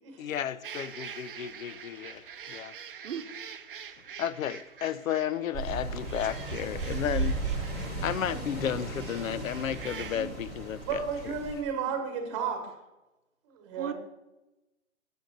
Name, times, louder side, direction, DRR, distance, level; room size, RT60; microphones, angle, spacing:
voice 1, 0.2-2.7 4.2-7.4 8.0-11.3, left 9 dB, 90° left, 0.6 m, -33 dB
sound 1, 0.6-10.2, right 7 dB, 45° right, 0.6 m, -45 dB
sound 2, 5.5-11.6, right 3 dB, 10° left, 1.2 m, -35 dB
voice 2, 8.0-8.7 10.1-10.4 11.8-12.0 13.8-13.9, right 8 dB, 75° right, 0.9 m, -40 dB
voice 3, 10.8-12.6 13.6-13.9, right 6 dB, 25° right, 1.3 m, -32 dB
7.6 x 6.9 x 3.9 m
hypercardioid pair, 165°, 39 cm